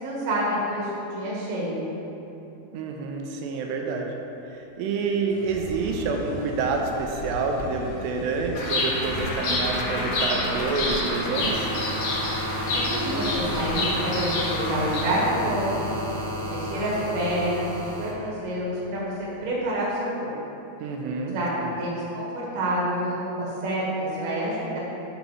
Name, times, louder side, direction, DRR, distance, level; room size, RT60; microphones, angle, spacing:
voice 1, 0.0-1.8 12.7-16.0 16.5-20.3 21.3-22.3 22.5-24.8, right 1 dB, 55° right, -6 dB, 1.8 m, -28 dB
voice 2, 2.7-4.2 4.8-11.7 20.8-21.7, right 4 dB, 85° right, 2 dB, 2.7 m, -28 dB
sound 1, 5.3-10.3, left 1 dB, 60° left, 1.7 m, -37 dB
sound 2, 7.5-18.1 19.5-19.6, equal, 70° right, 2.7 m, -33 dB
Bird vocalization bird call bird song, 8.5-15.0, left 2 dB, 75° left, 1.6 m, -28 dB
8.9 x 3.0 x 5.4 m, 3.0 s
omnidirectional pair, 4.8 m